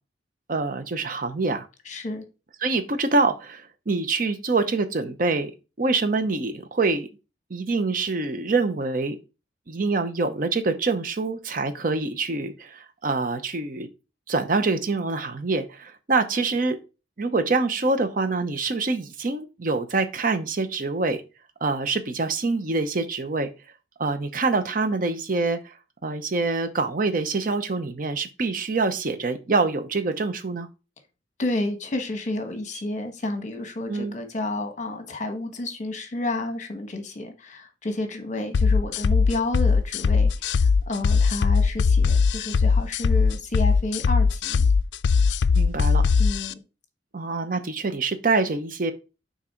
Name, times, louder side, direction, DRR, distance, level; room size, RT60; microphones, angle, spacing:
voice 1, 0.5-1.7 2.6-5.5 5.8-7.1 7.5-9.2 9.7-13.9 14.3-16.8 17.2-21.2 21.6-23.5 24.0-25.7 26.0-30.7 33.9-34.2 45.5-46.0 47.1-48.9, right 3 dB, 50° right, 0.7 m, -25 dB
voice 2, 1.8-2.2 31.4-44.7 46.2-46.6, left 2 dB, 40° left, 1.1 m, -30 dB
sound 1, 38.5-46.5, left 5 dB, 75° left, 0.3 m, -20 dB
6.1 x 4.1 x 4.4 m
head